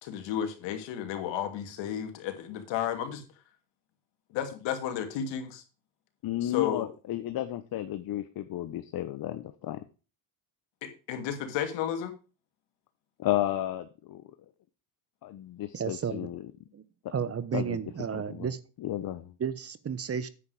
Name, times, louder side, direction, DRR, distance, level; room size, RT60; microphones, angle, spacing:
voice 1, 0.0-3.2 4.3-5.6 6.4-6.9 10.8-12.1, left 9 dB, 75° left, 6 dB, 2.6 m, -32 dB
voice 2, 6.2-9.8 13.2-14.3 15.2-16.5 17.0-17.1 17.5-17.8 18.1-18.5 18.8-19.3, left 13 dB, 55° left, 11 dB, 1.0 m, -33 dB
voice 3, 15.7-16.3 16.7-16.8 17.1-18.6 19.4-20.3, right 7 dB, 30° right, 15 dB, 1.1 m, -32 dB
9.8 x 8.3 x 4.8 m, 0.33 s
cardioid pair, 100°, 44 cm